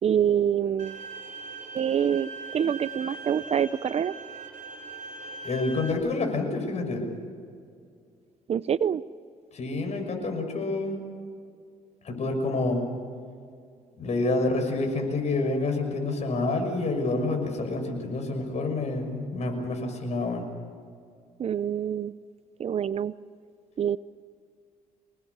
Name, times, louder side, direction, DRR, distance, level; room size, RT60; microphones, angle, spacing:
voice 1, 0.0-1.0 1.7-4.2 8.5-9.0 21.4-22.1 22.6-23.1 23.8-24.0, right 8 dB, 45° right, 17 dB, 0.6 m, -26 dB
Bowed string instrument, 0.8-5.9, right 3 dB, 65° right, 4.7 m, -40 dB
voice 2, 5.4-7.0 9.5-11.0 12.0-12.8 14.0-20.5, left 2 dB, 50° left, 4 dB, 6.1 m, -28 dB
27.0 x 20.0 x 8.3 m, 2.3 s
cardioid pair, 95°, 15 cm